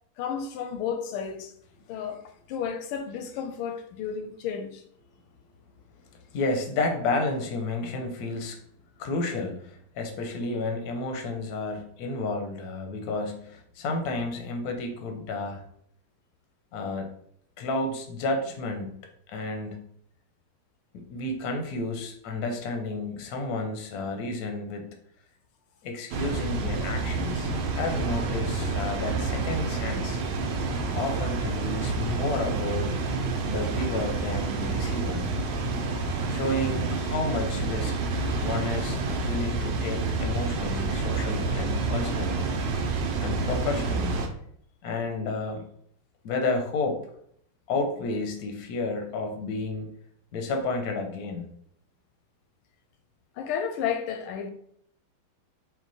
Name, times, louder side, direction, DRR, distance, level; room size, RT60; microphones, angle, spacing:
voice 1, 0.2-1.5 1.9-4.8 53.4-54.5, left 7 dB, 85° left, 1.5 m, -32 dB
voice 2, 6.3-8.6 9.0-15.6 16.7-17.1 17.6-18.9 19.3-19.9 20.9-25.0 25.8-30.2 30.9-33.0 33.5-35.3 36.3-42.5 43.2-44.2 44.8-45.6 46.2-47.0 47.7-49.9 50.3-51.5, left 3 dB, 65° left, 0.9 m, -31 dB
Water, 26.1-44.3, right 3 dB, 75° right, 1.4 m, -28 dB
4.6 x 2.2 x 4.0 m
omnidirectional pair, 2.3 m